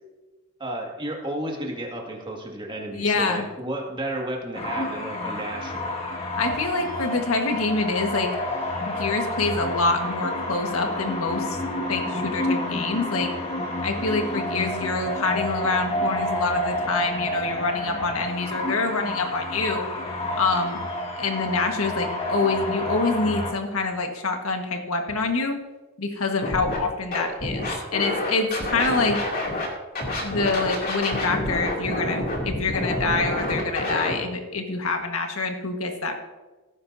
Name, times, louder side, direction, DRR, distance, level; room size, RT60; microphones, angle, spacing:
voice 1, 0.6-5.9, right 1 dB, 25° right, 0 dB, 2.0 m, -32 dB
voice 2, 2.9-3.5 6.4-8.3 8.8-11.6 11.9-13.3 13.8-19.9 20.3-20.8 21.2-25.6 26.0-27.7 27.9-29.2 30.2-36.1, left 3 dB, 85° left, 4 dB, 1.5 m, -26 dB
sound 1, 4.5-23.5, left 1 dB, 30° left, 1.7 m, -29 dB
Scratching (performance technique), 26.4-26.8 27.1-29.7 29.9-34.1, left 1 dB, 45° left, 2.7 m, -28 dB
17.5 x 9.9 x 2.7 m, 1.2 s
head